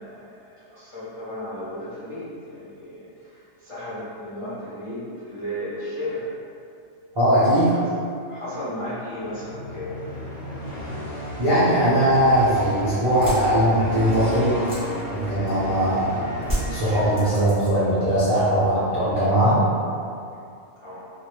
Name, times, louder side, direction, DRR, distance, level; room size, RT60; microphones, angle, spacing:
voice 1, 0.0-6.3 7.4-7.8 8.1-10.0 20.8-21.1, equal, 40° left, -14 dB, 0.4 m, -35 dB
voice 2, 7.1-7.7 11.4-14.5 15.1-16.1 16.7-19.6, equal, 40° right, -14 dB, 0.4 m, -20 dB
sound 1, 9.2-17.8, left 1 dB, 60° left, 0.9 m, -33 dB
sound 2, 13.2-15.8 16.4-18.0 18.3-18.8, equal, 20° left, 0.8 m, -33 dB
2.2 x 2.0 x 3.0 m, 2.4 s
omnidirectional pair, 1.4 m